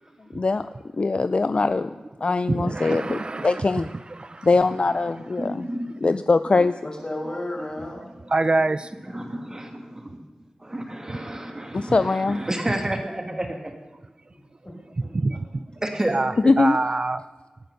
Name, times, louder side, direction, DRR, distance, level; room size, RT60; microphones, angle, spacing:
voice 1, 0.3-0.7 1.0-1.9 2.2-3.9 4.4-5.7 6.0-6.7 11.7-12.4 16.4-16.8, left 3 dB, 45° left, 12 dB, 0.4 m, -21 dB
voice 2, 2.5-4.5 8.3-8.9 11.1-11.2 11.7-11.8 15.0-15.7 16.1-17.2, right 2 dB, 40° right, 13 dB, 0.5 m, -26 dB
voice 3, 5.4-6.0 9.1-10.2 10.6-13.7 15.8-16.2 16.4-16.5, right 1 dB, 25° right, 4 dB, 2.0 m, -30 dB
voice 4, 6.8-8.0 14.3-14.7 15.0-15.4, left 1 dB, 30° left, -1 dB, 5.5 m, -34 dB
18.0 x 10.5 x 6.7 m, 1.2 s
wide cardioid pair, 75°, 3 cm